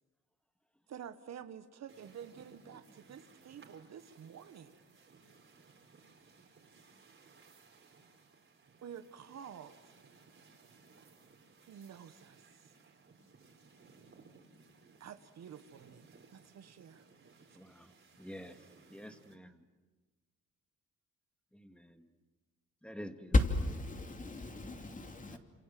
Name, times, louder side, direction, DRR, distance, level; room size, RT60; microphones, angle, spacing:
voice 1, 0.9-4.8 8.8-9.9 11.7-12.7 15.0-17.0 17.5-17.6, right 8 dB, 60° right, 11 dB, 1.4 m, -50 dB
sound 1, 1.9-19.3, right 4 dB, 45° right, 4.7 m, -61 dB
voice 2, 17.5-18.6 18.9-19.6 21.5-22.1 22.8-23.3 25.3-25.4, equal, 5° left, 7 dB, 2.2 m, -49 dB
voice 3, 23.3-25.4, left 2 dB, 25° left, 5 dB, 2.9 m, -32 dB
28.0 x 27.5 x 7.8 m, 1.2 s
cardioid pair, 90°, 30 cm